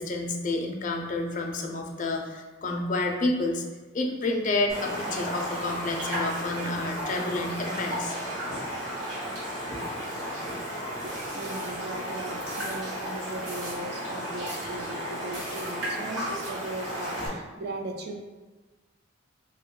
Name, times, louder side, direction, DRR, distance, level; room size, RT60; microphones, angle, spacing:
voice 1, 0.0-3.6 3.9-8.1, left 2 dB, 40° left, 2 dB, 0.4 m, -29 dB
Raindrop, 4.7-17.3, equal, 75° right, 1.2 m, -34 dB
sound 1, 11.0-11.7 12.5-12.8 13.5-13.8 14.4-14.7 15.3-15.7 16.4-16.5, right 1 dB, 35° right, 1.0 m, -42 dB
voice 2, 11.0-18.2, right 2 dB, 55° right, 3 dB, 0.4 m, -38 dB
3.4 x 2.3 x 3.7 m, 1.2 s
head